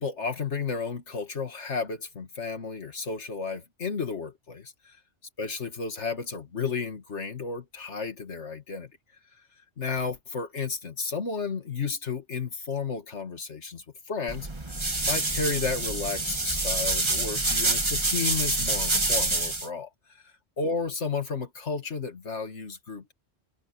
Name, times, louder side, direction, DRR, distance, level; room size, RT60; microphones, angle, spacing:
voice 1, 0.0-5.0 5.4-8.9 9.8-23.1, left 4 dB, 90° left, 2.4 m, -33 dB
sound 1, 14.3-19.7, right 2 dB, 25° right, 1.6 m, -27 dB
omnidirectional pair, 1.2 m